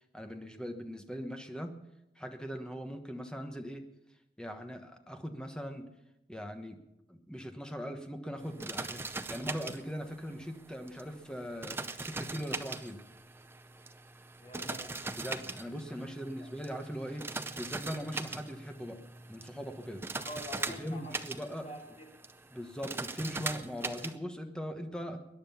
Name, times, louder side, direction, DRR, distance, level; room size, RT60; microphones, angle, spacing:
voice 1, 0.1-1.7 2.2-3.8 4.4-5.9 6.3-6.8 7.1-9.0 9.3-13.0 15.2-17.2 17.5-19.0 19.3-20.0 20.8-21.7 22.5-25.2, equal, 5° left, 5 dB, 1.2 m, -40 dB
sound 1, 8.4-24.2, right 3 dB, 15° right, 0.6 m, -41 dB
voice 2, 14.4-15.0 16.1-16.5 20.1-21.1 21.6-22.1, left 1 dB, 40° left, 0 dB, 3.2 m, -46 dB
21.5 x 10.0 x 5.7 m, 0.90 s
head